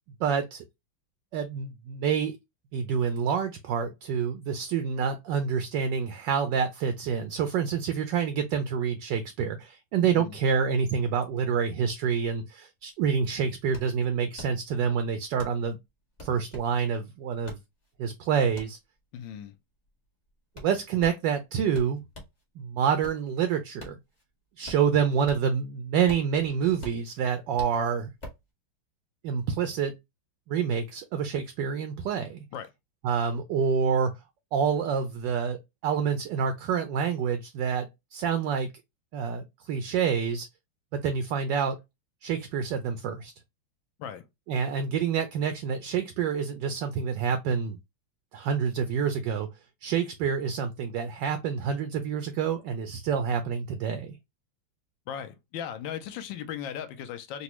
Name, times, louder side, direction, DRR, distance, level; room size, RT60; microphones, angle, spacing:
voice 1, 0.2-0.6 1.3-2.3 2.7-15.8 16.2-17.6 18.0-18.8 20.6-22.0 22.6-23.9 24.6-28.1 29.2-29.9 30.5-32.4 33.0-34.1 34.5-38.7 39.1-40.5 40.9-41.8 42.2-43.3 44.5-47.8 48.3-49.5 49.8-54.2, right 7 dB, 75° right, 1.0 m, -27 dB
voice 2, 10.0-10.3 19.1-19.6 32.5-32.7 44.0-44.2 55.1-57.4, left 9 dB, 75° left, 1.2 m, -37 dB
sound 1, 12.8-12.9 13.1-22.4 22.8-25.6 25.9-28.5, left 1 dB, 30° left, 0.8 m, -46 dB
4.0 x 2.2 x 2.9 m
omnidirectional pair, 2.3 m